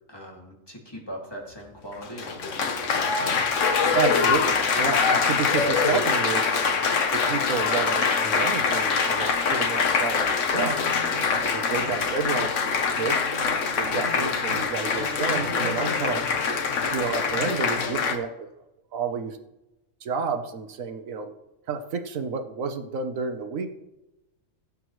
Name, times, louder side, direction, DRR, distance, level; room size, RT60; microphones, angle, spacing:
voice 1, 0.1-3.4 11.6-11.8, equal, 20° left, -2 dB, 2.4 m, -41 dB
Applause, 1.9-18.2, left 5 dB, 65° left, 1.4 m, -24 dB
voice 2, 3.9-6.5 7.1-10.8 11.5-16.2 16.9-18.5 18.9-19.4 20.0-21.3 21.7-23.7, right 5 dB, 80° right, 7 dB, 1.3 m, -30 dB
16.5 x 8.4 x 3.1 m, 0.95 s
omnidirectional pair, 1.4 m